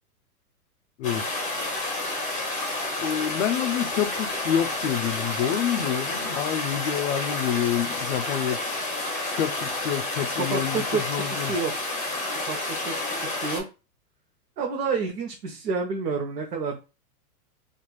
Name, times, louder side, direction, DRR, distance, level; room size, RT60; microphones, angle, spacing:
sound 1, 1.0-13.6, left 2 dB, 15° left, 0.8 m, -30 dB
voice 1, 3.0-8.6 9.3-11.5, left 10 dB, 50° left, 0.5 m, -27 dB
voice 2, 10.3-11.0 11.3-11.7 12.5-12.9 13.2-13.6 14.6-16.8, right 5 dB, 80° right, 0.9 m, -29 dB
3.0 x 2.5 x 2.3 m
hypercardioid pair, 140°, 47 cm